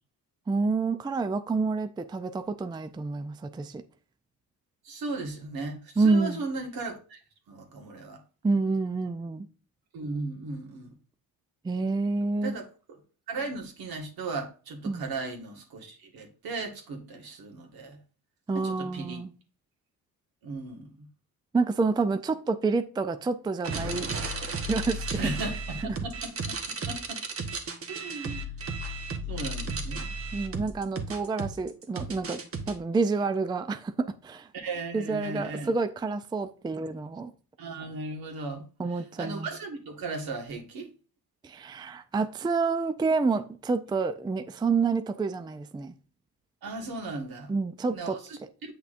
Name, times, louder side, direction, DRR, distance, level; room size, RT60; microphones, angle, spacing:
voice 1, 0.5-3.8 6.0-6.4 8.4-9.5 11.6-12.5 14.9-15.1 18.5-19.3 21.5-24.1 24.7-25.2 25.8-26.0 30.3-32.4 32.7-34.5 34.9-37.3 38.8-39.5 41.4-45.9 47.5-48.2, right 4 dB, 10° right, 0.4 m, -28 dB
voice 2, 4.8-7.2 7.5-8.2 9.9-10.9 12.4-12.6 13.3-18.0 18.5-19.2 20.4-21.1 25.2-27.2 27.9-28.5 29.3-30.1 34.5-35.7 37.6-38.7 38.9-40.9 46.6-47.5 47.9-48.7, right 3 dB, 70° right, 1.8 m, -36 dB
sound 1, 23.6-32.7, right 2 dB, 35° right, 1.1 m, -34 dB
8.1 x 5.8 x 2.5 m
cardioid pair, 95°, 38 cm